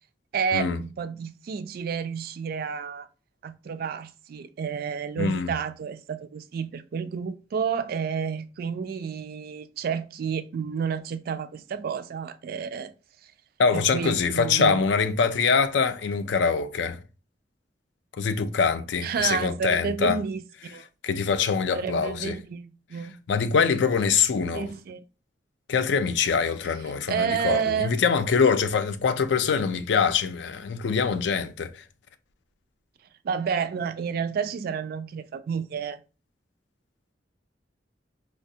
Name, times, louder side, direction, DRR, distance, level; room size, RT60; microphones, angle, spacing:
voice 1, 0.3-3.1 3.4-12.9 13.7-14.8 19.0-20.9 21.7-23.1 24.5-25.0 27.1-28.0 33.2-36.0, right 6 dB, 55° right, 0.3 m, -30 dB
voice 2, 5.2-5.5 13.6-17.0 18.1-20.2 21.0-22.4 23.3-24.7 25.7-31.8, left 5 dB, 70° left, 0.4 m, -24 dB
4.7 x 2.2 x 2.7 m
head